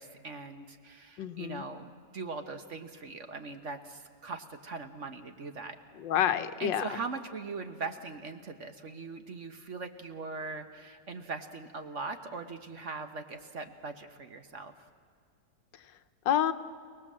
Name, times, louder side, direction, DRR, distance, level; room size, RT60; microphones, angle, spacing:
voice 1, 0.0-5.8 6.6-14.7, right 4 dB, 45° right, 8 dB, 1.3 m, -40 dB
voice 2, 1.2-1.6 6.0-7.0 16.2-16.5, left 10 dB, 85° left, 11 dB, 1.6 m, -28 dB
29.0 x 19.0 x 7.5 m, 2.2 s
omnidirectional pair, 2.0 m